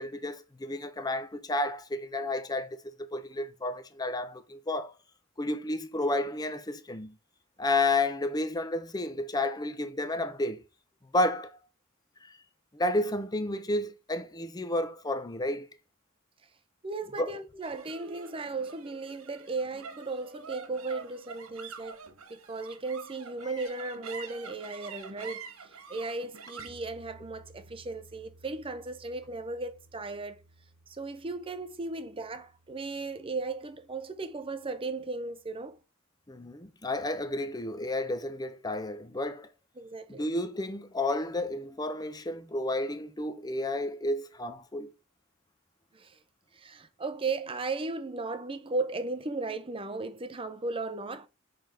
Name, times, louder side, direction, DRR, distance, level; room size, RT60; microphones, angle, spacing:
voice 1, 0.0-4.9 5.4-7.2 7.6-10.6 11.1-11.6 12.2-12.3 12.7-15.7 17.2-17.3 36.3-39.5 40.1-44.9, left 2 dB, 20° left, 0.7 m, -31 dB
voice 2, 16.8-22.0 22.3-30.4 30.9-35.8 39.8-40.3 45.9-46.2 46.5-51.3, right 3 dB, 25° right, 0.6 m, -36 dB
sound 1, 17.6-34.2, right 5 dB, 85° right, 1.1 m, -48 dB
5.5 x 3.4 x 5.7 m
head